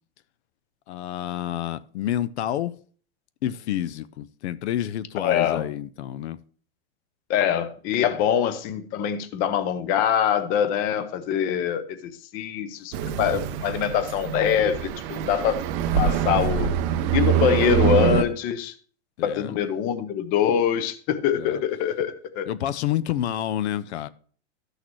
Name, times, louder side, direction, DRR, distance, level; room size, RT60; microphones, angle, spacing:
voice 1, 0.9-2.7 3.4-6.4 19.2-19.5 21.4-21.6 22.5-24.1, left 12 dB, 70° left, 0.6 m, -29 dB
voice 2, 5.2-5.6 7.3-15.6 16.0-16.7 17.1-18.7 19.2-22.5, left 9 dB, 25° left, 0.6 m, -24 dB
sound 1, 12.9-18.2, right 9 dB, 30° right, 0.5 m, -24 dB
12.5 x 6.5 x 3.1 m
supercardioid pair, 160°, 35 cm